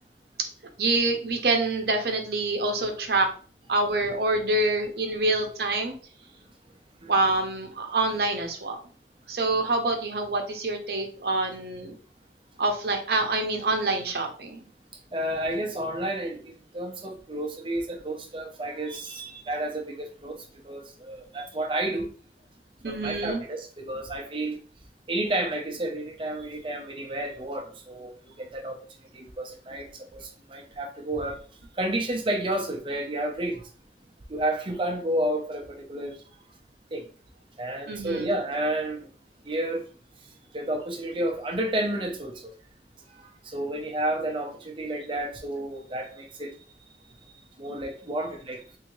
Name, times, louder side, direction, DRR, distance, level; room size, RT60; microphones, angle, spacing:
voice 1, 0.8-3.3 3.7-5.9 7.1-8.8 9.3-11.9 12.6-14.6 22.8-23.4 37.9-38.3, right 2 dB, 60° right, 0.8 m, -26 dB
voice 2, 15.1-22.1 22.8-24.6 25.1-28.8 29.1-31.4 31.8-33.6 34.3-36.2 36.9-37.0 37.6-39.1 39.5-39.9 40.5-42.5 43.2-46.5 47.6-48.6, right 1 dB, 30° right, 0.6 m, -31 dB
3.6 x 2.8 x 3.0 m
head